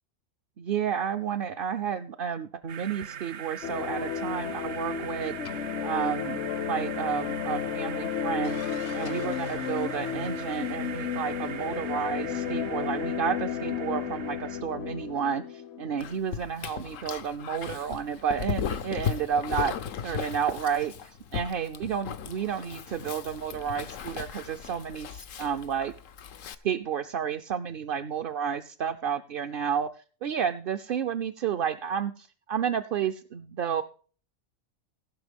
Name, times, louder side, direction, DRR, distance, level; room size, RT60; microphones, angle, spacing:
voice 1, 0.6-5.4 5.8-6.4 6.7-8.6 8.9-19.8 20.0-25.9 26.6-33.8, right 8 dB, 55° right, 7 dB, 0.7 m, -31 dB
sound 1, 2.7-14.6, right 9 dB, 80° right, 1.1 m, -41 dB
sound 2, 3.6-16.2, left 8 dB, 65° left, 0.9 m, -33 dB
Dog, 16.0-26.6, left 8 dB, 90° left, 1.3 m, -36 dB
16.5 x 5.9 x 5.1 m, 0.40 s
omnidirectional pair, 1.3 m